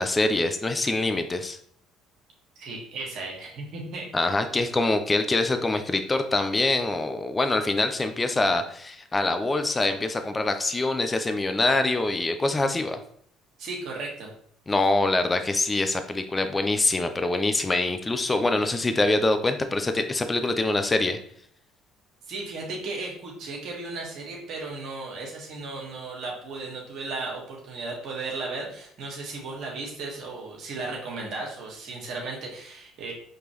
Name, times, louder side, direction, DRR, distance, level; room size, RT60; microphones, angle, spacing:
voice 1, 0.0-1.6 4.1-13.0 14.7-21.2, left 2 dB, 20° left, 8 dB, 0.6 m, -24 dB
voice 2, 2.5-4.1 13.6-14.3 22.3-33.1, right 3 dB, 65° right, -1 dB, 1.4 m, -35 dB
5.2 x 3.2 x 3.0 m, 0.63 s
hypercardioid pair, 65°, 0 cm